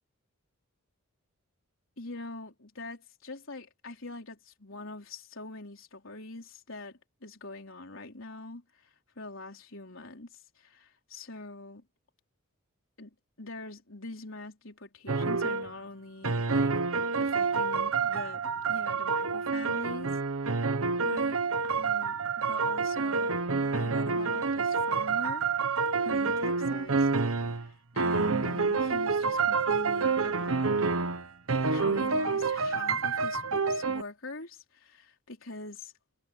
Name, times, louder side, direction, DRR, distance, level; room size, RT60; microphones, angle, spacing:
voice 1, 2.0-8.6 9.2-11.8 13.0-20.1 20.4-20.7 21.0-21.4 21.6-25.5 26.0-30.7 31.7-35.9, left 2 dB, 60° left, 4.4 m, -44 dB
sound 1, 15.1-15.7 16.2-27.7 28.0-34.0, right 4 dB, 70° right, 1.2 m, -28 dB
head